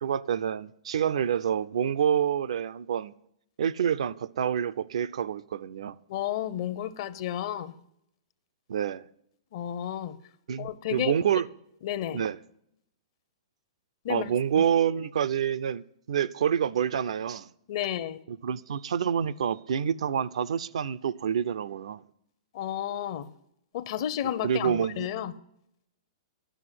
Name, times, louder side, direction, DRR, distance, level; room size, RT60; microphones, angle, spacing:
voice 1, 0.0-3.1 3.6-6.0 8.7-9.1 10.5-11.5 12.1-12.4 14.1-15.8 16.1-17.5 18.3-22.0 24.4-25.1, right 8 dB, 75° right, 0.5 m, -27 dB
voice 2, 6.1-7.7 9.5-10.2 10.6-11.1 11.8-12.2 14.0-14.6 17.7-18.2 22.5-23.3 23.7-25.3, left 11 dB, 50° left, 0.7 m, -32 dB
11.0 x 6.1 x 7.6 m
hypercardioid pair, 145°, 3 cm